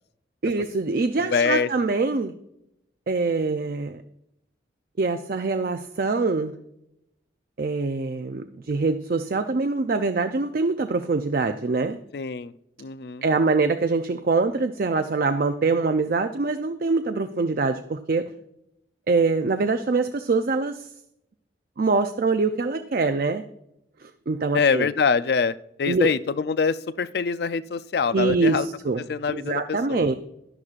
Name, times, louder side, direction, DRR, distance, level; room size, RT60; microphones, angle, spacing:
voice 1, 0.4-2.3 3.1-4.0 5.0-6.5 7.6-12.0 13.2-18.3 19.1-20.9 21.8-23.4 24.0-24.9 25.9-26.1 28.1-29.0 29.3-30.1, right 3 dB, 50° right, 8 dB, 0.4 m, -24 dB
voice 2, 1.2-1.7 12.1-12.5 12.8-13.2 24.5-28.7 29.1-30.0, left 5 dB, 60° left, 15 dB, 0.4 m, -24 dB
11.5 x 11.0 x 2.4 m, 0.79 s
head